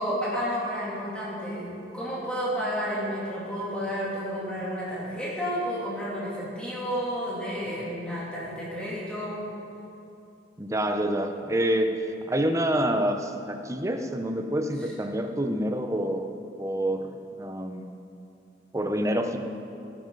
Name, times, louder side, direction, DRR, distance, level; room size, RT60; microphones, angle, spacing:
voice 1, 0.0-1.7 1.9-9.4, equal, 5° left, -9 dB, 2.8 m, -31 dB
voice 2, 10.6-16.3 16.6-18.0 18.7-19.4, right 1 dB, 15° right, 6 dB, 0.6 m, -27 dB
17.0 x 10.5 x 3.9 m, 2.7 s
head